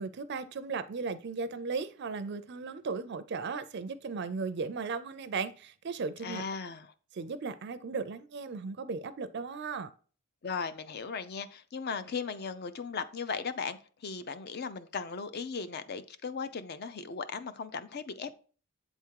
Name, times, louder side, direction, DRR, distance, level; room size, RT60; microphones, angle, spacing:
voice 1, 0.0-6.4 7.1-9.9, right 4 dB, 50° right, 0.4 m, -36 dB
voice 2, 6.2-6.9 10.4-18.3, left 5 dB, 45° left, 0.5 m, -37 dB
8.1 x 3.5 x 4.6 m
head